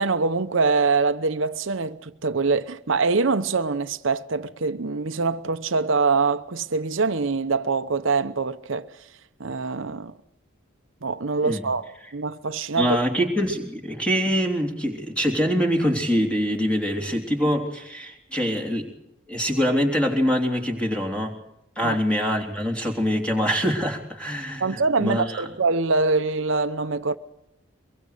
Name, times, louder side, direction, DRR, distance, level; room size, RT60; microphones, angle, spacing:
voice 1, 0.0-8.9 9.4-10.1 11.0-13.0 21.8-22.0 24.6-27.2, right 4 dB, 70° right, 0.8 m, -24 dB
voice 2, 12.8-18.9 19.3-21.4 21.7-25.5, equal, 5° left, 3.4 m, -24 dB
24.0 x 22.5 x 6.7 m
head